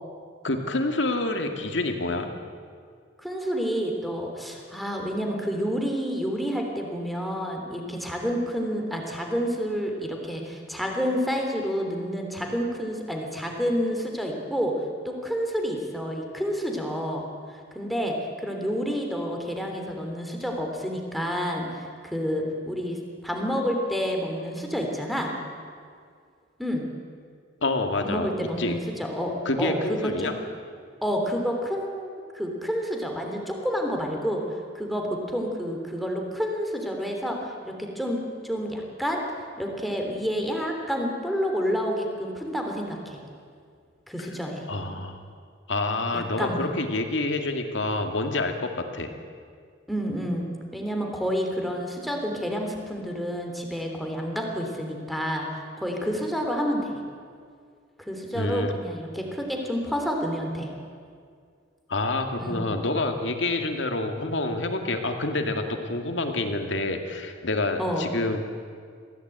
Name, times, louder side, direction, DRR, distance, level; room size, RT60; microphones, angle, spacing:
voice 1, 0.4-2.3 27.6-28.3 28.6-28.8 29.5-30.3 44.7-45.2 45.7-49.1 58.3-58.7 61.9-68.4, left 2 dB, 70° left, 5 dB, 2.2 m, -27 dB
voice 2, 3.2-14.7 15.0-23.0 23.2-25.4 26.6-26.8 28.0-30.3 31.0-34.4 34.7-39.2 39.6-43.2 44.1-44.6 46.1-46.8 49.9-50.5 50.7-57.0 58.0-60.7 62.4-62.7 67.8-68.1, equal, ahead, 1 dB, 3.1 m, -29 dB
22.0 x 16.0 x 9.0 m, 2.2 s
head